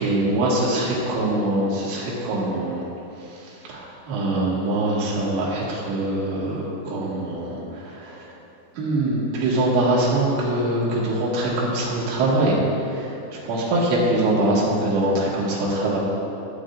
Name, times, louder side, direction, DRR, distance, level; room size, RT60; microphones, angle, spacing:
voice 1, 0.0-2.8 3.7-8.3 8.8-12.6 12.9-13.1 13.4-16.0, right 1 dB, 85° right, -5 dB, 4.2 m, -23 dB
14.5 x 8.6 x 2.4 m, 2.9 s
omnidirectional pair, 5.5 m